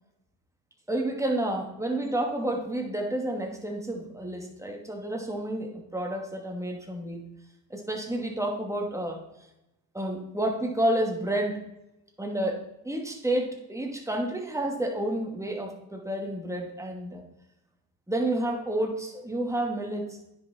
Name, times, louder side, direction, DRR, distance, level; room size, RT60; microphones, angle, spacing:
voice 1, 0.9-7.2 7.7-9.2 9.9-11.6 12.2-17.2 18.1-20.2, right 1 dB, 5° right, 1 dB, 2.4 m, -30 dB
9.9 x 6.3 x 4.4 m, 0.88 s
hypercardioid pair, 60°, 49 cm